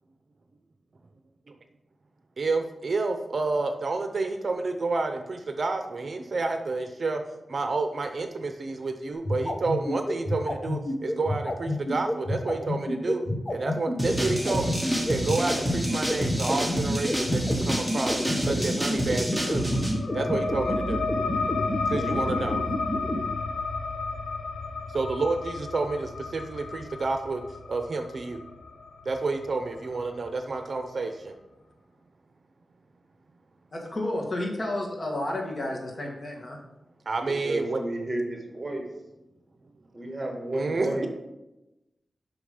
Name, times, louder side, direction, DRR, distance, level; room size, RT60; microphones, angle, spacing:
voice 1, 2.4-7.2 7.5-13.2 13.5-18.2 18.5-19.7 20.1-21.0 21.9-22.6 24.9-27.4 27.7-28.4 29.1-31.3 37.1-37.8 40.5-41.1, right 3 dB, 60° right, 6 dB, 0.6 m, -29 dB
sound 1, 9.2-23.2, left 1 dB, 25° left, 1.2 m, -29 dB
sound 2, 14.0-19.9, equal, ahead, 1.7 m, -28 dB
sound 3, 19.3-30.5, left 3 dB, 85° left, 0.6 m, -32 dB
voice 2, 21.9-22.4 37.4-38.8 39.9-41.1, right 1 dB, 30° right, 2 dB, 1.6 m, -32 dB
voice 3, 33.7-36.6, left 1 dB, 45° left, 0 dB, 1.6 m, -31 dB
6.0 x 5.1 x 5.0 m, 0.95 s
wide cardioid pair, 75°, 0 cm